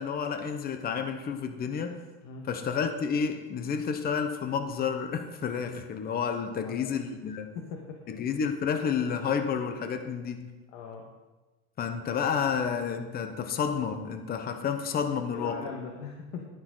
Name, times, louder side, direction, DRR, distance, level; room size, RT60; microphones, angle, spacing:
voice 1, 0.0-2.0 2.5-7.5 8.1-10.5 11.8-15.6, left 6 dB, 25° left, 8 dB, 0.9 m, -30 dB
voice 2, 6.5-6.9 7.5-8.0 10.7-11.1 15.3-16.5, left 5 dB, 65° left, 1 dB, 1.8 m, -40 dB
12.0 x 10.5 x 3.9 m, 1.2 s
supercardioid pair, 140°, 37 cm